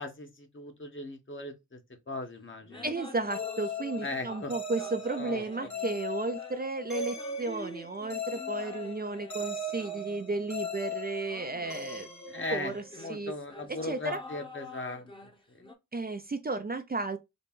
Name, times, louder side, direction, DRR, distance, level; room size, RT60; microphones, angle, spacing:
voice 1, 0.0-1.8 2.1-2.8 4.0-4.5 5.2-5.7 12.3-15.1, left 2 dB, 35° left, 1.2 m, -38 dB
sound 1, 2.6-4.5 4.8-10.6 11.3-15.7, left 1 dB, 15° left, 1.0 m, -48 dB
voice 2, 2.8-12.1 12.5-12.8 13.1-13.3 13.7-14.2 15.9-17.2, right 3 dB, 30° right, 0.5 m, -33 dB
sound 2, 3.3-13.1, left 2 dB, 55° left, 1.2 m, -39 dB
3.9 x 2.2 x 3.6 m
cardioid pair, 60°, 33 cm